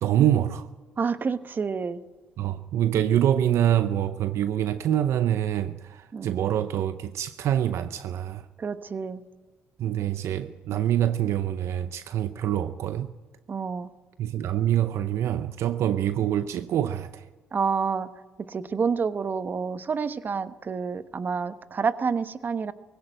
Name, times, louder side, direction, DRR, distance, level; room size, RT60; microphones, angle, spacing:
voice 1, 0.0-0.7 2.4-8.5 9.8-13.1 14.2-17.3, right 11 dB, 65° right, 0.6 m, -25 dB
voice 2, 1.0-2.0 6.1-6.3 8.6-9.2 13.5-13.9 17.5-18.1 18.4-22.7, right 5 dB, 40° right, 1.1 m, -28 dB
20.0 x 16.5 x 8.9 m
supercardioid pair, 70°, 5 cm